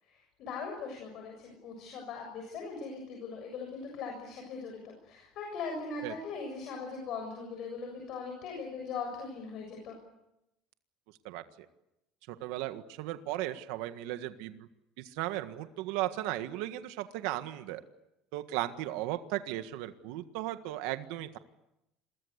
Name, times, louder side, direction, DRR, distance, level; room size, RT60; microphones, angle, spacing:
voice 1, 0.0-10.0, left 4 dB, 45° left, 2 dB, 7.1 m, -40 dB
voice 2, 11.2-11.7 12.3-14.7 15.0-17.8 18.3-21.4, right 15 dB, 70° right, 9 dB, 1.6 m, -36 dB
28.5 x 23.5 x 8.2 m, 0.89 s
cardioid pair, 170°, 0 cm